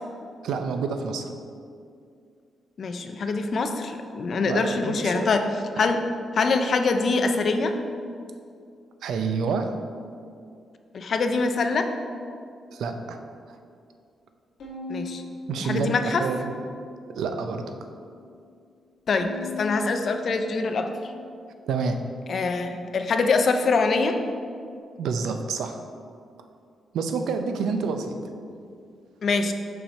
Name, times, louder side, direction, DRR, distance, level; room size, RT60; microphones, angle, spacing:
voice 1, 0.4-1.3 4.4-5.3 9.0-9.7 12.7-13.2 13.5-13.6 15.5-16.6 17.1-17.6 21.7-22.0 25.0-25.8 26.9-28.2, right 5 dB, 80° right, 6 dB, 0.5 m, -28 dB
voice 2, 2.8-5.5 5.8-6.0 6.3-7.7 10.9-11.9 14.9-15.2 15.6-16.2 19.1-19.3 19.6-20.9 22.3-24.2 29.2-29.5, left 4 dB, 40° left, 6 dB, 0.4 m, -24 dB
Bowed string instrument, 14.6-17.0 17.4-18.2 19.2-21.7, left 3 dB, 60° left, 1.7 m, -40 dB
5.7 x 5.5 x 4.2 m, 2.4 s
wide cardioid pair, 180°, 0 cm